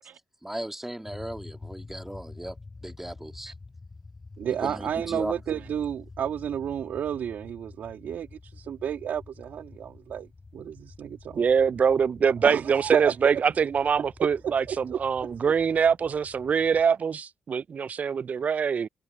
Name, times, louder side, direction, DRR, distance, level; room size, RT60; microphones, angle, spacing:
voice 1, 0.4-3.5 4.5-5.3, right 1 dB, 10° right, 2.1 m, -37 dB
sound 1, 1.1-16.9, left 3 dB, 35° left, 8.0 m, -48 dB
voice 2, 4.4-11.5 12.4-13.4 14.7-15.3, right 9 dB, 70° right, 2.9 m, -32 dB
voice 3, 11.3-18.9, right 6 dB, 50° right, 0.4 m, -24 dB
supercardioid pair, 50°, 3 cm